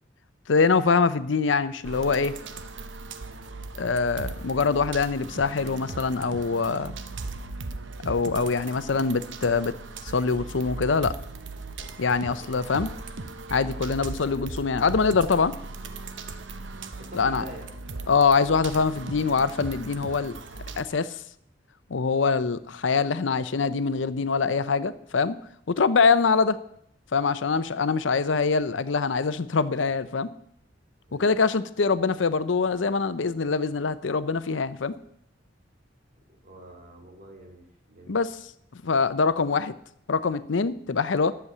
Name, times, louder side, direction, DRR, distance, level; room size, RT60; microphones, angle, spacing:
voice 1, 0.5-2.4 3.8-6.9 8.0-9.7 10.0-11.1 12.0-12.9 13.5-15.5 17.1-17.4 18.1-20.4 20.8-21.2 21.9-25.3 25.7-26.6 27.1-30.3 31.1-34.9 38.1-38.4 38.8-39.7 40.1-41.3, left 4 dB, 80° left, 14 dB, 0.6 m, -24 dB
sound 1, 1.8-20.8, right 3 dB, 75° right, 0.9 m, -38 dB
voice 2, 17.0-17.8 31.1-31.2 36.4-38.2, right 1 dB, 45° right, 1 dB, 3.1 m, -45 dB
11.0 x 7.0 x 8.4 m, 0.71 s
head